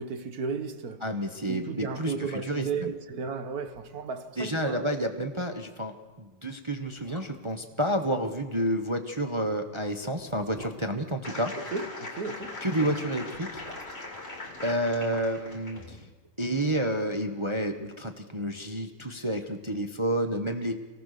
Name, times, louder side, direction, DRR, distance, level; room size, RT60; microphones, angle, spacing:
voice 1, 0.0-1.0 1.5-4.9 11.6-13.0, right 5 dB, 50° right, 1.5 m, -34 dB
voice 2, 1.0-2.1 2.5-2.9 4.4-11.5 12.6-13.5 14.6-16.0 16.4-20.7, right 1 dB, 25° right, 0.6 m, -30 dB
sound 1, 3.7-4.3 4.6-4.7 5.1-5.3 6.0-6.1 6.7-7.7 9.2-11.8 13.1-15.3 15.6-15.7, equal, 10° right, 3.4 m, -50 dB
sound 2, 11.2-15.9, left 2 dB, 30° left, 3.0 m, -40 dB
25.5 x 18.5 x 6.7 m
omnidirectional pair, 2.4 m